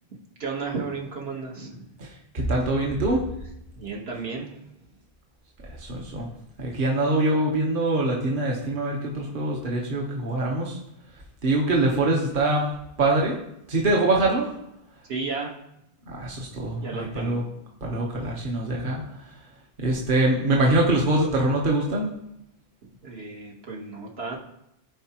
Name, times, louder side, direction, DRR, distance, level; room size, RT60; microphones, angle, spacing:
voice 1, 0.4-1.8 3.8-4.7 15.1-15.5 16.8-17.4 23.0-24.4, right 4 dB, 75° right, -2 dB, 1.6 m, -33 dB
voice 2, 2.3-3.2 5.7-6.3 6.6-10.8 11.4-12.7 13.0-13.4 13.7-14.5 16.1-17.4 17.8-19.0 19.8-22.1, right 2 dB, 55° right, -2 dB, 1.2 m, -24 dB
14.0 x 4.7 x 2.9 m, 0.80 s
omnidirectional pair, 1.0 m